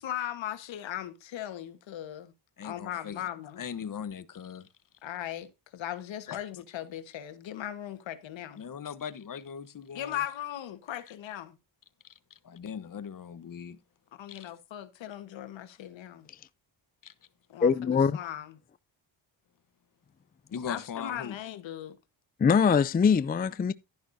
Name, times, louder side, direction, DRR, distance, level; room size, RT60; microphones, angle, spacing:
voice 1, 0.0-2.3 2.6-3.6 5.0-8.6 9.9-11.6 14.1-16.3 17.5-18.6 20.7-22.0, left 11 dB, 85° left, 1.5 m, -38 dB
voice 2, 2.6-3.2 3.6-4.7 6.3-6.4 8.6-10.2 12.4-13.8 14.3-14.5 17.0-17.1 20.5-21.3, left 7 dB, 45° left, 1.2 m, -39 dB
voice 3, 17.6-18.2 22.4-23.7, left 6 dB, 20° left, 0.4 m, -23 dB
11.5 x 10.5 x 2.7 m
cardioid pair, 100°, 44 cm